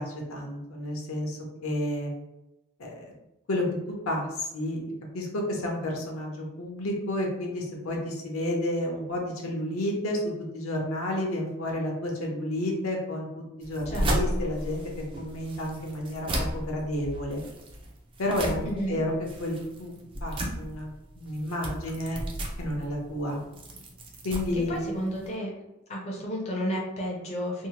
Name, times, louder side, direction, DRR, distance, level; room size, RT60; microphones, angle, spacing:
voice 1, 0.0-2.1 2.8-3.1 3.5-4.8 5.1-10.2 10.5-14.8 15.2-16.3 16.5-17.4 18.2-19.1 19.4-19.9 20.2-20.9 21.2-22.2 22.6-23.4 24.2-24.8, left 1 dB, 75° left, 0 dB, 0.7 m, -31 dB
sound 1, 13.6-25.3, right 1 dB, 25° right, 0.4 m, -34 dB
voice 2, 13.9-14.4 18.6-19.0 24.5-25.5 25.9-27.7, equal, 30° left, -3 dB, 0.5 m, -32 dB
2.7 x 2.1 x 2.8 m, 0.93 s
head